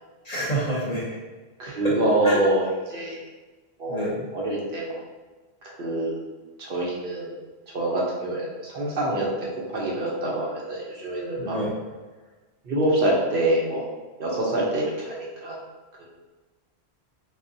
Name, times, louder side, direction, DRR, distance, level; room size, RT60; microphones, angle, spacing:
voice 1, 0.2-1.2 1.8-1.9 2.2-2.4 3.9-4.2 11.4-11.7, right 1 dB, 45° left, -6 dB, 0.7 m, -27 dB
voice 2, 1.6-3.2 3.8-4.1 4.3-5.0 5.6-6.2 6.6-7.3 7.7-11.6 12.6-13.8 14.2-15.6 16.0-16.1, right 1 dB, 60° right, -4 dB, 0.8 m, -26 dB
3.8 x 2.1 x 2.6 m, 1.3 s
omnidirectional pair, 1.1 m